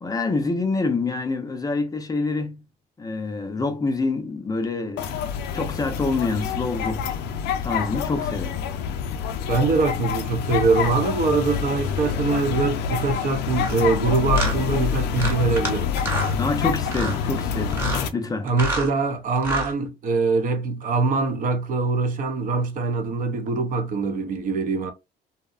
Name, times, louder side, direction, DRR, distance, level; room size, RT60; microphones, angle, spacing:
voice 1, 0.0-2.6 3.0-7.1 7.6-8.6 16.4-17.8 18.1-18.5, left 3 dB, 20° left, 0.4 m, -26 dB
sound 1, 5.0-18.1, left 7 dB, 80° left, 0.4 m, -27 dB
voice 2, 9.5-15.9 18.4-24.9, right 3 dB, 50° right, 0.6 m, -23 dB
sound 2, 13.6-13.8 14.3-14.5 15.2-15.7 16.0-16.3 16.8-17.2 17.7-18.1 18.5-18.9 19.4-19.7, right 1 dB, 15° right, 1.0 m, -27 dB
2.7 x 2.1 x 2.3 m
cardioid pair, 110°, 17 cm